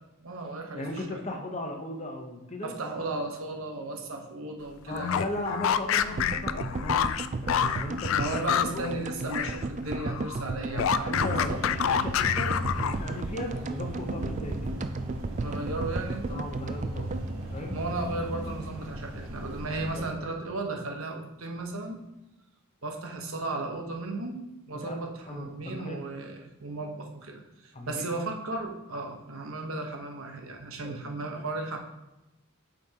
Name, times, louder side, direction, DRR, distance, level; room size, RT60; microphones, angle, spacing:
voice 1, 0.2-1.2 2.6-5.2 8.1-11.6 15.4-16.4 17.7-22.0 22.8-24.4 24.7-31.8, right 2 dB, 70° right, 2 dB, 1.1 m, -35 dB
voice 2, 0.7-2.7 4.9-7.1 7.4-8.8 11.0-14.7 16.3-17.1 17.5-17.8 19.9-20.0 24.7-25.0 25.3-26.0 27.7-28.1 30.8-31.0, left 1 dB, 30° left, 3 dB, 0.9 m, -37 dB
sound 1, 4.9-9.6 9.9-13.2, left 8 dB, 70° left, 0.3 m, -28 dB
sound 2, 6.2-18.4 18.6-18.7 18.9-19.0, right 3 dB, 35° right, 0.3 m, -35 dB
sound 3, 11.1-20.1, equal, 90° right, 1.4 m, -37 dB
8.6 x 5.1 x 2.9 m, 0.95 s
head